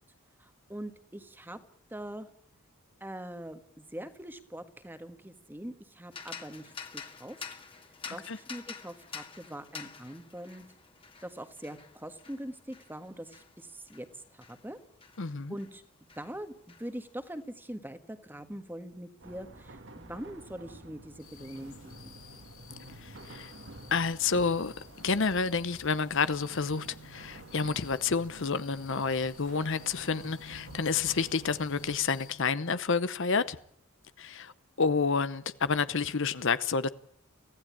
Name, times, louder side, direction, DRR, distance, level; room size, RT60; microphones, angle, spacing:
voice 1, 0.4-1.6 1.9-2.3 3.0-7.4 8.1-10.7 11.2-14.8 15.5-15.8 16.1-22.2, right 1 dB, 10° right, 1.6 m, -43 dB
sound 1, 6.1-15.8 16.1-17.4, left 6 dB, 25° left, 2.0 m, -48 dB
voice 2, 15.2-15.6 23.0-23.5 23.9-24.7 25.0-33.6 34.2-34.5 34.8-36.9, left 5 dB, 55° left, 0.8 m, -29 dB
sound 2, 19.2-31.9, right 2 dB, 55° right, 2.0 m, -50 dB
sound 3, 21.2-32.3, left 3 dB, 70° left, 5.0 m, -52 dB
24.0 x 16.0 x 8.6 m
head